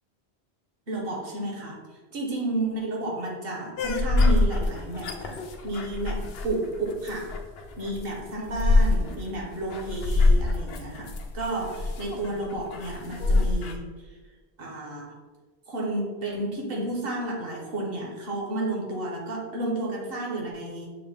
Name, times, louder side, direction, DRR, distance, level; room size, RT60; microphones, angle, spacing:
voice 1, 0.9-1.8 2.1-7.3 7.8-14.2 14.6-15.1 15.7-20.9, right 2 dB, 65° right, -2 dB, 1.2 m, -32 dB
sound 1, 3.8-13.7, left 2 dB, 70° left, 0.8 m, -25 dB
6.3 x 2.1 x 3.4 m, 1.4 s
omnidirectional pair, 1.1 m